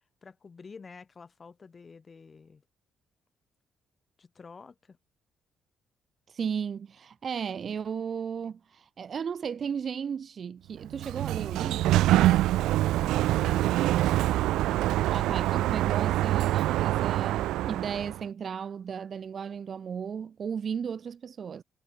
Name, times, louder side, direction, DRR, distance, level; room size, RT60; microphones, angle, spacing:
voice 1, 0.2-2.6 4.2-5.0 13.3-13.9, left 5 dB, 35° left, 5.5 m, -48 dB
voice 2, 6.3-12.0 15.1-21.6, right 7 dB, 50° right, 1.3 m, -35 dB
Sliding door, 10.8-18.2, right 15 dB, 90° right, 0.4 m, -25 dB
cardioid pair, 90°, 0 cm